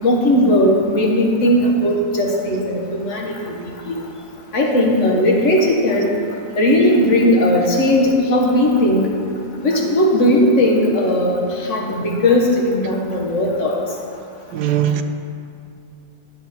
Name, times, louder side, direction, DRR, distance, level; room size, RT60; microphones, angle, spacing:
voice 1, 0.0-4.0 4.5-6.2 6.5-9.1 9.6-13.8, left 1 dB, 40° left, 1.5 m, -17 dB
voice 2, 14.5-15.0, right 10 dB, 70° right, 1.0 m, -19 dB
12.0 x 7.6 x 4.4 m
omnidirectional pair, 2.1 m